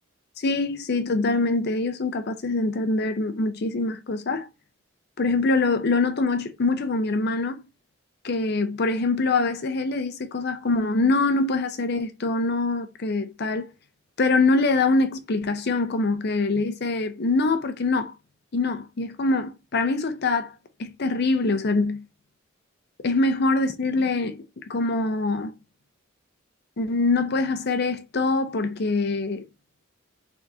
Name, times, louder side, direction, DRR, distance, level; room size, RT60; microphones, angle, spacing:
voice 1, 0.4-4.5 5.2-7.6 8.2-13.7 14.2-18.1 18.5-20.5 20.8-22.0 23.0-24.4 24.7-25.5 26.8-29.4, left 3 dB, 50° left, 0.6 m, -24 dB
3.6 x 3.6 x 2.7 m
head